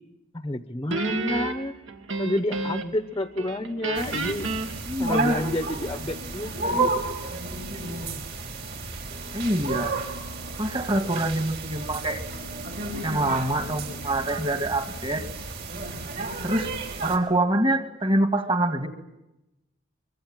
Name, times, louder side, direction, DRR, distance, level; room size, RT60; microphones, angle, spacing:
voice 1, 0.3-1.8 2.2-4.5 5.0-7.0, left 1 dB, 20° left, 9 dB, 1.0 m, -30 dB
Guitar, 0.9-3.1 3.4-5.7, right 2 dB, 65° right, 2.4 m, -31 dB
sound 1, 3.9-17.2, right 3 dB, 50° right, 5.1 m, -32 dB
voice 2, 4.9-5.4 9.3-10.0 10.6-12.2 13.0-15.2 16.4-16.7 17.0-18.9, right 1 dB, 25° right, 8 dB, 2.2 m, -25 dB
25.0 x 23.5 x 9.1 m, 0.92 s
head